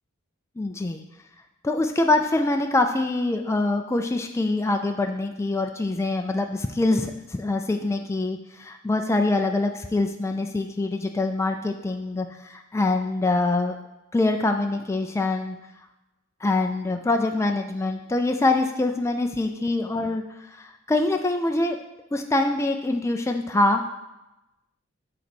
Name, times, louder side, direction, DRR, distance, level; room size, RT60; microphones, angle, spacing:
voice 1, 0.6-1.0 1.6-13.8 14.1-15.6 16.4-20.2 20.6-21.8 22.1-23.8, left 2 dB, 15° left, 4 dB, 0.4 m, -24 dB
7.8 x 3.9 x 6.2 m, 0.96 s
head